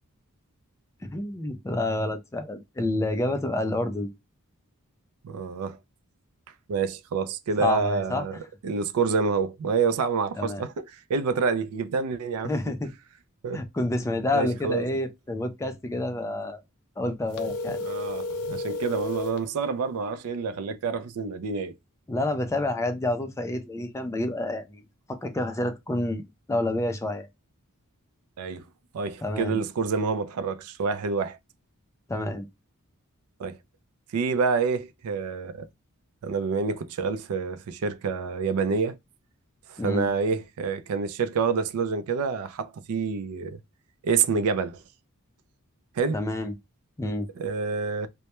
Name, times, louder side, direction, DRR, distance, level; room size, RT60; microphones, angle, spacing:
voice 1, 1.0-4.1 7.6-8.3 10.4-10.6 12.4-12.9 13.5-16.6 17.0-17.8 22.1-24.8 25.1-27.3 29.2-29.6 32.1-32.5 39.8-40.1 46.1-46.6 47.0-47.3, left 1 dB, 15° left, 0.3 m, -28 dB
voice 2, 5.2-5.8 6.7-12.5 13.4-13.6 14.3-14.9 17.8-21.7 28.4-28.6 28.9-31.4 33.4-33.6 34.1-35.7 36.2-39.0 39.7-43.6 44.0-44.8 46.0-46.2 47.4-48.1, right 5 dB, 70° right, 0.4 m, -27 dB
sound 1, 17.3-19.4, left 2 dB, 85° left, 0.5 m, -32 dB
2.1 x 2.1 x 2.8 m
head